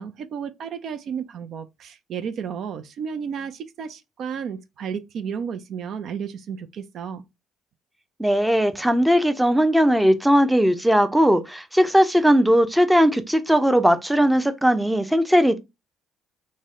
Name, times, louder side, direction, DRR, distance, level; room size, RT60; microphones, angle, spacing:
voice 1, 0.0-7.2, right 7 dB, 65° right, 0.4 m, -32 dB
voice 2, 8.2-15.6, equal, 5° right, 0.5 m, -18 dB
4.0 x 2.1 x 3.5 m
cardioid pair, 85°, 0 cm